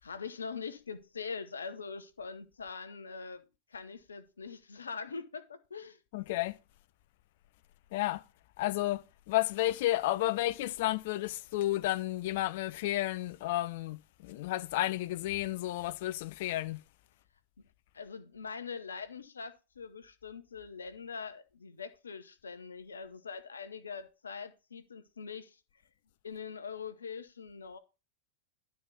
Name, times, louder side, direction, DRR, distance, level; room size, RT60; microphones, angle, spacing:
voice 1, 0.0-3.4 3.7-6.0 17.9-25.6 26.2-27.8, left 5 dB, 75° left, 0.9 m, -43 dB
voice 2, 6.1-6.6 7.9-8.2 8.6-16.8, left 16 dB, 50° left, 0.5 m, -32 dB
12.0 x 4.2 x 5.7 m
figure-of-eight pair, 90°, 0 cm